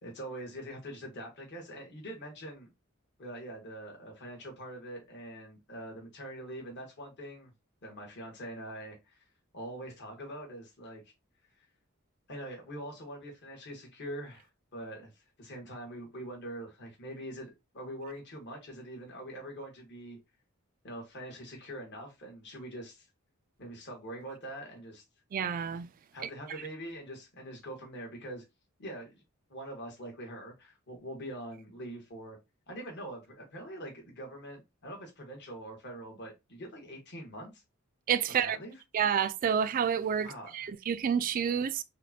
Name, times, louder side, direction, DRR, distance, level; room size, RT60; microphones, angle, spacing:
voice 1, 0.0-2.7 3.2-7.5 7.8-9.3 9.5-11.1 12.3-20.2 20.8-23.1 23.6-25.0 26.1-28.4 28.8-29.2 29.5-32.4 32.7-37.6 38.4-38.7 40.2-40.5, right 1 dB, 55° left, 1.3 m, -43 dB
voice 2, 25.3-25.9 38.1-38.6 38.9-41.8, right 8 dB, 40° right, 0.3 m, -29 dB
5.0 x 2.2 x 2.7 m
head